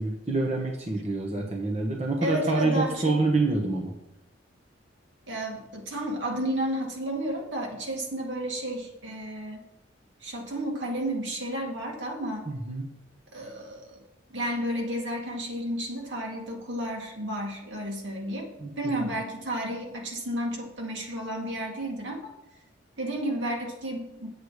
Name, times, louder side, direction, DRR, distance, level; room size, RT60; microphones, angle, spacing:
voice 1, 0.0-3.9 12.5-12.9 18.6-19.1, right 3 dB, 35° right, 0 dB, 1.2 m, -27 dB
voice 2, 2.2-3.2 5.3-9.6 10.2-12.4 13.3-14.0 14.3-18.5 18.8-22.3 23.0-24.3, right 1 dB, 70° right, 0 dB, 2.3 m, -32 dB
8.8 x 8.2 x 4.9 m, 0.87 s
head